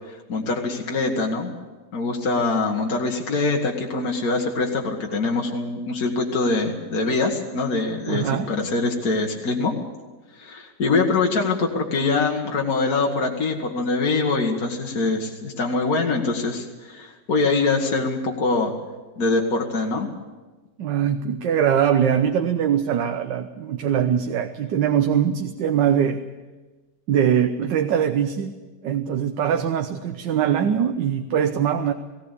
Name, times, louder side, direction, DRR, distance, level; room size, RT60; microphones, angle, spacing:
voice 1, 0.1-1.5 1.9-9.7 10.3-18.7 19.2-20.1, left 3 dB, 55° left, 0 dB, 2.1 m, -24 dB
voice 2, 8.1-8.5 20.8-26.2 27.1-28.6 28.8-31.9, right 8 dB, 85° right, 7 dB, 1.5 m, -22 dB
19.0 x 17.5 x 8.2 m, 1.2 s
omnidirectional pair, 1.9 m